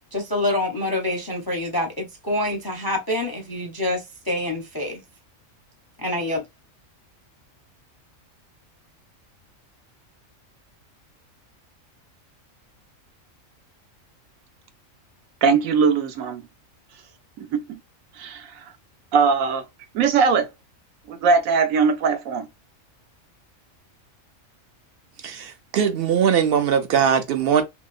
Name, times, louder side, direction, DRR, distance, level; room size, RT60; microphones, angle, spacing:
voice 1, 0.1-5.0 6.0-6.4, left 1 dB, 30° left, 0.4 m, -26 dB
voice 2, 15.4-16.4 17.4-17.8 18.2-18.6 19.1-19.6 19.9-20.5 21.1-22.5, right 5 dB, 90° right, 1.1 m, -20 dB
voice 3, 25.2-27.6, right 8 dB, 65° right, 0.6 m, -20 dB
3.0 x 2.8 x 2.3 m
omnidirectional pair, 1.4 m